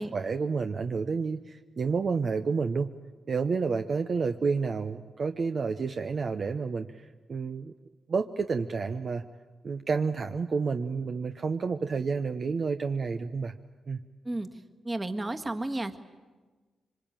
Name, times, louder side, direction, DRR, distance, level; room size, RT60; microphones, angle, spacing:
voice 1, 0.0-2.9 3.3-7.7 8.1-9.2 9.6-13.5 13.9-14.0, right 5 dB, 45° right, 6 dB, 0.9 m, -30 dB
voice 2, 14.8-16.0, right 2 dB, 20° right, 7 dB, 1.6 m, -32 dB
26.0 x 24.5 x 8.9 m, 1.3 s
cardioid pair, 115°, 0 cm